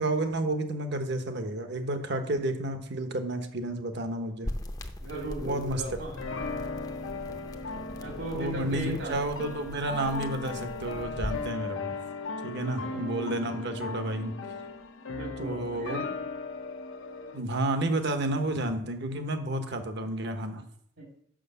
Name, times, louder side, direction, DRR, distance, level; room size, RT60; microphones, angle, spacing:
voice 1, 0.0-4.5 5.5-5.8 8.3-12.0 12.4-14.3 15.4-16.0 17.3-20.6, right 1 dB, 60° right, 7 dB, 1.0 m, -31 dB
sound 1, 4.4-11.5, left 1 dB, 20° left, 0.6 m, -41 dB
voice 2, 5.0-6.2 8.0-9.2 12.6-13.0 15.2-16.1 21.0-21.1, right 2 dB, 75° right, 0 dB, 2.8 m, -37 dB
sound 2, 6.2-17.4, left 3 dB, 80° left, 0.8 m, -37 dB
6.4 x 5.9 x 6.8 m, 0.67 s
head